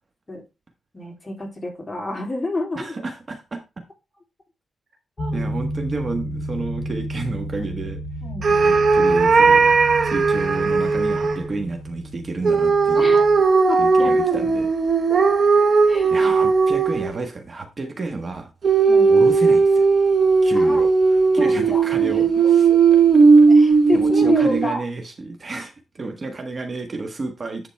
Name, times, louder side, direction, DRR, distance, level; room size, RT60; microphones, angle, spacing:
voice 1, 0.9-2.9 5.2-5.5 8.2-8.7 12.9-13.3 13.7-14.4 15.1-15.3 15.6-16.3 18.9-19.3 20.5-20.8 21.3-22.3 23.5-24.8, left 2 dB, 20° left, 0 dB, 3.1 m, -29 dB
voice 2, 2.7-3.6 5.3-8.0 8.6-9.7 10.0-13.1 13.8-14.7 16.1-18.5 19.1-19.9 20.4-20.9 21.3-23.0 23.6-27.7, right 3 dB, 40° right, 5 dB, 1.4 m, -31 dB
sound 1, 5.2-13.5, equal, 40° left, 4.0 m, -31 dB
sound 2, 8.4-11.4 12.4-17.2 18.6-24.7, right 4 dB, 55° right, 0.8 m, -16 dB
10.5 x 4.0 x 4.5 m, 0.27 s
cardioid pair, 100°, 0 cm